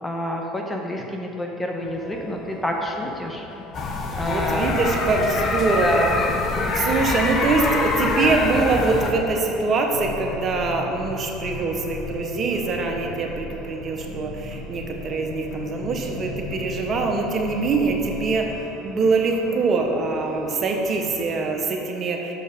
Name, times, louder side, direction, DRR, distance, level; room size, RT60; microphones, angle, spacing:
voice 1, 0.0-3.5 4.1-4.8 5.8-6.2, equal, 10° left, 1 dB, 1.0 m, -28 dB
sound 1, 1.8-21.3, left 2 dB, 70° left, 1.7 m, -42 dB
sound 2, 3.7-9.1, left 3 dB, 40° left, 0.9 m, -24 dB
voice 2, 4.2-6.1 6.7-18.5 18.8-22.3, right 4 dB, 40° right, 2 dB, 0.9 m, -24 dB
sound 3, 9.9-18.5, left 2 dB, 90° left, 1.0 m, -37 dB
6.9 x 6.6 x 5.0 m, 2.9 s
supercardioid pair, 95°, 0 cm